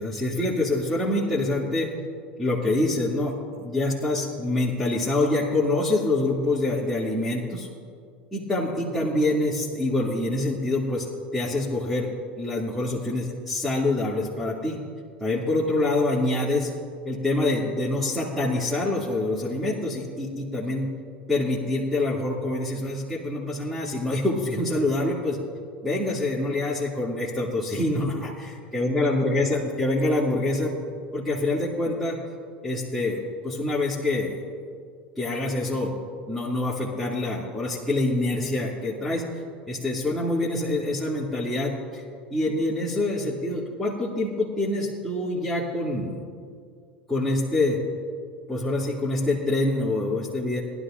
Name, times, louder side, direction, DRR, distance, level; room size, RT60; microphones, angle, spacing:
voice 1, 0.0-1.9 2.4-7.7 8.3-12.1 12.4-14.8 15.2-16.7 17.0-20.9 21.3-25.4 25.8-30.7 31.1-32.2 32.6-34.4 35.2-35.9 36.3-42.0 42.3-46.2 47.1-47.8 48.5-50.6, left 2 dB, ahead, -9 dB, 2.4 m, -26 dB
19.5 x 12.0 x 2.5 m, 2.2 s
hypercardioid pair, 80°, 6 cm